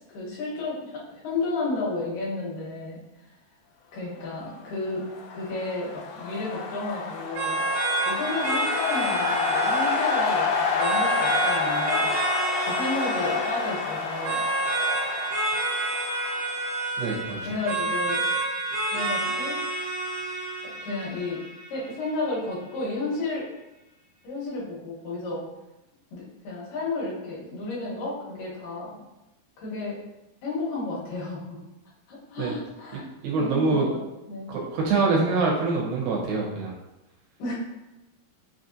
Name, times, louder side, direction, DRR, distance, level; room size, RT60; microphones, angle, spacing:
voice 1, 0.1-3.0 3.9-5.0 5.3-7.7 8.0-12.1 12.6-14.4 17.2-18.2 18.9-19.6 20.6-21.4 21.7-23.5 24.2-25.5 26.1-29.0 29.6-30.0 30.4-31.6 32.1-33.1 33.4-34.0 34.3-34.5 37.4-37.5, left 3 dB, 75° left, -6 dB, 2.6 m, -32 dB
sound 1, 4.9-16.8, left 5 dB, 90° left, 1.8 m, -29 dB
sound 2, 7.3-22.3, right 2 dB, 65° right, 0.9 m, -29 dB
voice 2, 17.0-17.4 32.4-32.5 32.9-33.9 34.5-36.7, right 3 dB, 85° right, -3 dB, 2.7 m, -25 dB
5.9 x 2.7 x 2.5 m, 0.95 s
omnidirectional pair, 4.1 m